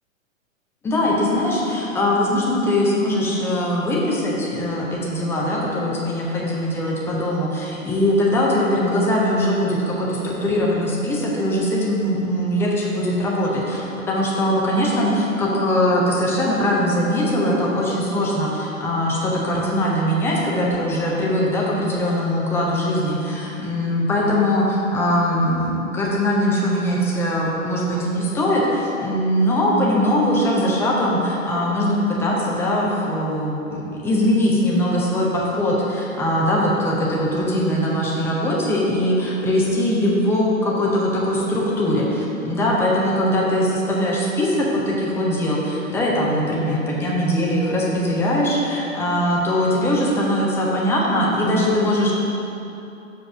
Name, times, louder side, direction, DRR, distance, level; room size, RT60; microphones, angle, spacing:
voice 1, 0.8-52.1, left 1 dB, 5° left, -4 dB, 0.5 m, -21 dB
6.8 x 4.9 x 6.0 m, 2.9 s
figure-of-eight pair, 115°, 40 cm